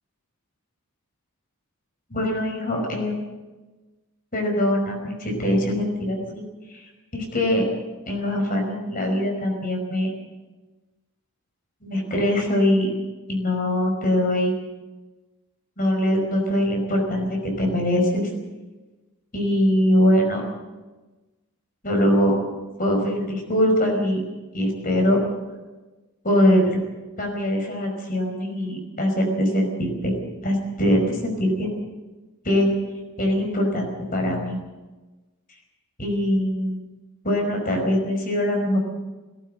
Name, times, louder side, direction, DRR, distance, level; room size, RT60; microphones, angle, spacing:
voice 1, 2.1-3.1 4.3-6.4 6.7-7.7 8.1-10.2 11.8-12.9 13.3-14.5 15.8-18.3 19.3-20.4 21.8-22.4 22.8-24.2 24.5-25.2 26.2-26.8 27.2-30.1 30.4-31.7 32.4-32.7 33.2-34.6 36.0-36.8 37.2-38.8, left 1 dB, 40° left, 2 dB, 5.4 m, -22 dB
18.5 x 18.0 x 7.9 m, 1.2 s
head